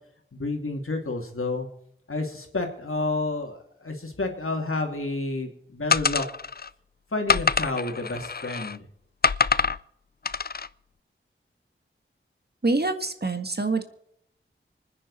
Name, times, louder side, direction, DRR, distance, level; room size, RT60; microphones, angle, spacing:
voice 1, 0.3-1.7 2.1-6.2 7.1-8.8, left 2 dB, 85° left, 2 dB, 2.8 m, -30 dB
sound 1, 5.9-6.7 7.3-8.8 9.2-9.8 10.3-10.7, left 5 dB, 45° left, 0.5 m, -25 dB
voice 2, 12.6-13.8, right 3 dB, 50° right, 8 dB, 1.8 m, -25 dB
26.0 x 9.9 x 4.2 m, 0.73 s
wide cardioid pair, 45°, 21 cm